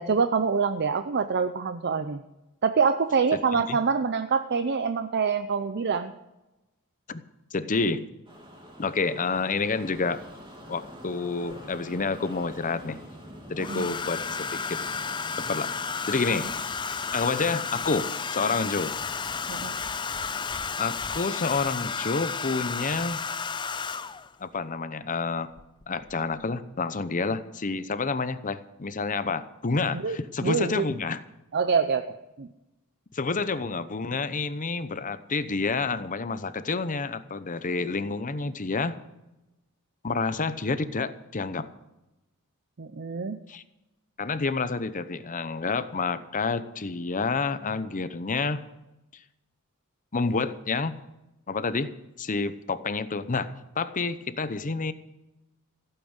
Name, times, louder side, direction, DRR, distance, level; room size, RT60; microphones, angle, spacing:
voice 1, 0.0-2.2 2.6-6.1 13.6-13.9 19.5-19.7 29.9-30.2 30.4-30.8 31.5-32.5 42.8-43.4, right 5 dB, 50° right, 10 dB, 0.6 m, -25 dB
voice 2, 3.3-3.8 7.1-7.2 7.5-8.1 8.8-10.2 10.7-13.0 13.5-14.9 15.4-15.7 16.0-16.5 17.1-18.1 18.3-18.9 20.8-23.2 24.4-25.5 25.9-31.2 33.1-39.0 40.0-41.7 43.5-43.6 44.2-48.6 50.1-51.0 51.5-51.9 52.2-54.9, left 4 dB, 40° left, 13 dB, 0.8 m, -29 dB
sound 1, 8.3-23.0, equal, 25° right, 2.5 m, -46 dB
Domestic sounds home sounds, 11.5-12.2 13.6-24.3 25.6-25.8 26.1-26.5, left 5 dB, 20° left, 0.4 m, -32 dB
15.5 x 8.9 x 8.1 m, 0.98 s
head